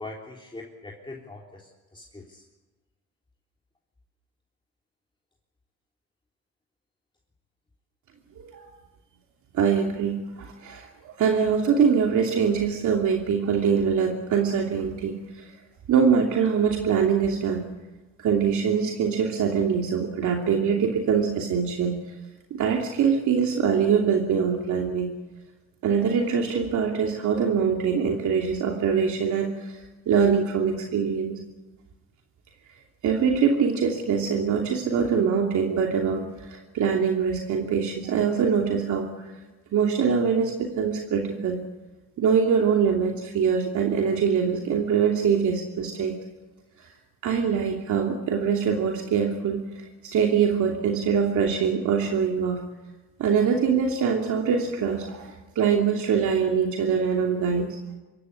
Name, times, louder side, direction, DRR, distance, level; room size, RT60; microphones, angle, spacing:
voice 1, 0.0-2.4, left 2 dB, 15° left, -2 dB, 3.7 m, -42 dB
voice 2, 8.4-8.7 9.5-15.5 15.9-17.7 18.2-22.0 22.5-25.1 25.8-31.4 33.0-39.1 39.7-41.6 42.2-46.1 47.2-49.6 50.0-52.6 53.2-57.8, right 6 dB, 75° right, 1 dB, 2.9 m, -23 dB
25.5 x 15.5 x 10.0 m, 1.2 s
cardioid pair, 90°, 30 cm